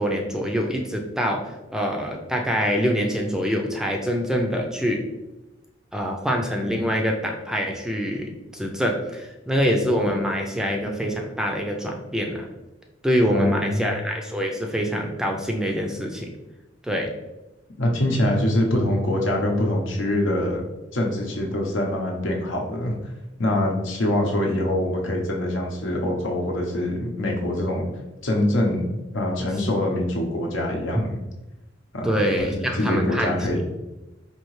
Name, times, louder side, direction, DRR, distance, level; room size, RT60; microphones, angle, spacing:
voice 1, 0.0-1.4 1.7-5.0 5.9-12.5 13.0-16.3 16.8-17.1 32.0-33.4, equal, 5° right, 1 dB, 0.4 m, -25 dB
voice 2, 13.3-13.9 17.8-20.6 20.9-23.0 23.4-27.9 28.2-28.9 29.1-31.2 31.9-32.2 32.4-33.6, left 1 dB, 80° left, 0 dB, 0.8 m, -24 dB
4.4 x 2.8 x 3.1 m, 1.0 s
head